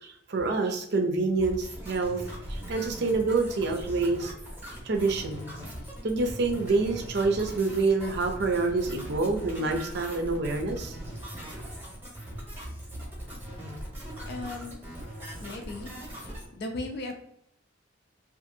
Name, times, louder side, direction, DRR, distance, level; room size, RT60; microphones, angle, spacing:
voice 1, 0.0-2.2 2.5-4.3 4.8-5.5 6.0-11.0, right 3 dB, 60° right, 4 dB, 0.5 m, -27 dB
sound 1, 1.4-16.5, equal, 10° right, 0.8 m, -40 dB
voice 2, 14.3-14.8 15.4-15.9 16.6-17.1, left 2 dB, 55° left, 4 dB, 0.5 m, -36 dB
2.7 x 2.4 x 2.5 m, 0.73 s
head